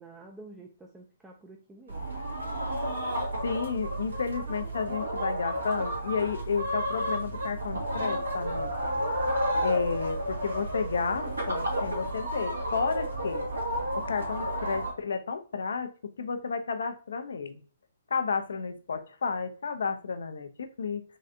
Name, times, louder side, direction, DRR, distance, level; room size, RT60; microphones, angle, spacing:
voice 1, 0.0-2.1, right 2 dB, 10° right, 1 dB, 0.5 m, -49 dB
sound 1, 1.9-14.9, right 1 dB, 80° right, 1.7 m, -31 dB
voice 2, 3.4-8.7 9.6-13.5 14.0-17.6 18.1-21.0, left 5 dB, 70° left, 9 dB, 0.6 m, -32 dB
3.7 x 3.2 x 2.6 m, 0.39 s
figure-of-eight pair, 130°, 0 cm